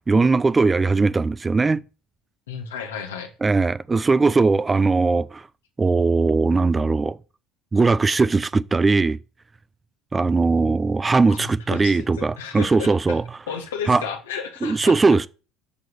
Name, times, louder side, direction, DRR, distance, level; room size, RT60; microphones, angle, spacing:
voice 1, 0.0-1.8 3.4-5.5 5.8-7.2 7.7-9.2 10.1-13.2 13.9-14.0 14.6-15.3, right 3 dB, 20° right, 0.6 m, -19 dB
voice 2, 2.5-3.3 11.3-13.2 13.5-15.0, left 6 dB, 85° left, 2.2 m, -33 dB
8.5 x 6.4 x 8.3 m
hypercardioid pair, 75°, 0 cm